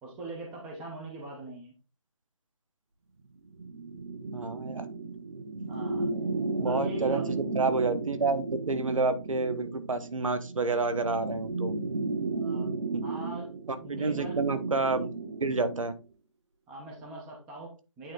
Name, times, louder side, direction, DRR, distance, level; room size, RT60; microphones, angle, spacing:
voice 1, 0.0-1.7 5.7-6.0 6.7-7.3 12.3-12.7 13.0-13.5 13.8-14.4 15.2-15.3 16.7-18.1, right 2 dB, 5° right, -1 dB, 0.5 m, -42 dB
sound 1, 3.5-16.0, right 3 dB, 55° right, 1.5 m, -34 dB
voice 2, 4.3-4.9 6.6-7.2 7.5-11.7 12.9-13.0 13.7-15.9, right 3 dB, 85° right, 10 dB, 1.3 m, -29 dB
8.9 x 3.3 x 3.8 m, 0.30 s
hypercardioid pair, 170°, 17 cm